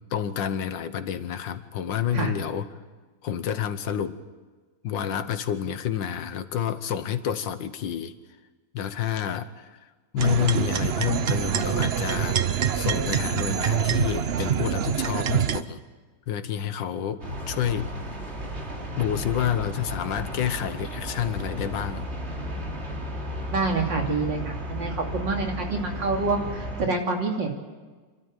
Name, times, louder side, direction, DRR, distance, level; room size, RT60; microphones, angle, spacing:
voice 1, 0.1-2.7 3.2-4.2 4.8-8.1 8.7-9.7 10.1-15.8 16.3-17.9 19.0-22.1, left 9 dB, 75° left, 11 dB, 1.8 m, -29 dB
sound 1, 10.2-15.6, right 8 dB, 55° right, 0.7 m, -25 dB
sound 2, 17.2-26.9, equal, 35° right, 2.8 m, -34 dB
voice 2, 23.5-27.5, right 3 dB, 70° right, 1 dB, 3.5 m, -27 dB
27.5 x 13.0 x 9.1 m, 1.3 s
omnidirectional pair, 2.0 m